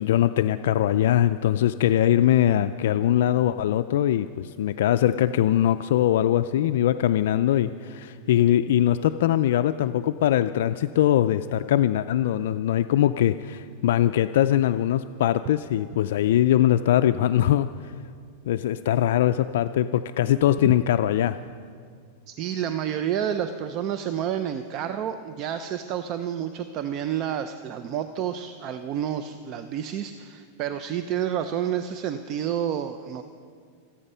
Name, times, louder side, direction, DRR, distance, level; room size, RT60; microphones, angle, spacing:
voice 1, 0.0-17.9 18.5-21.4, left 11 dB, 70° left, 11 dB, 0.3 m, -22 dB
voice 2, 22.3-33.2, right 9 dB, 35° right, 9 dB, 0.5 m, -29 dB
26.0 x 8.8 x 5.6 m, 2.1 s
supercardioid pair, 155°, 0 cm